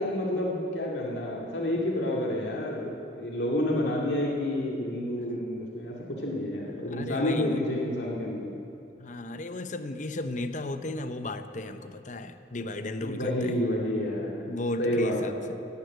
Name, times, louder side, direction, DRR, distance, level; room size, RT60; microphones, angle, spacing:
voice 1, 0.0-8.5 13.0-14.5 14.8-15.4, left 1 dB, 80° left, -2 dB, 2.3 m, -29 dB
voice 2, 6.9-7.6 9.0-13.6 14.5-15.4, left 2 dB, 45° left, 9 dB, 0.8 m, -34 dB
18.0 x 10.0 x 8.0 m, 2.6 s
head